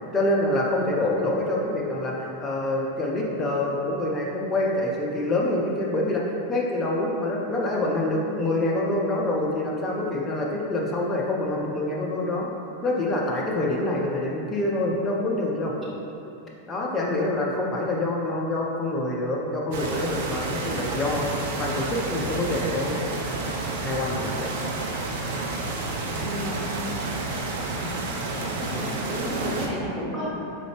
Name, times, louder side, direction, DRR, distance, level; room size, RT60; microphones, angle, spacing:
voice 1, 0.1-6.2 6.5-12.5 12.8-15.7 16.7-21.3 21.6-23.0 23.8-24.5, left 1 dB, 20° left, -3 dB, 0.4 m, -26 dB
sound 1, 19.7-29.7, right 2 dB, 50° right, 0.4 m, -30 dB
voice 2, 26.2-26.6 27.8-28.1 28.4-30.3, equal, 20° right, -6 dB, 0.8 m, -32 dB
3.8 x 3.2 x 3.3 m, 2.8 s
figure-of-eight pair, 90°, 0 cm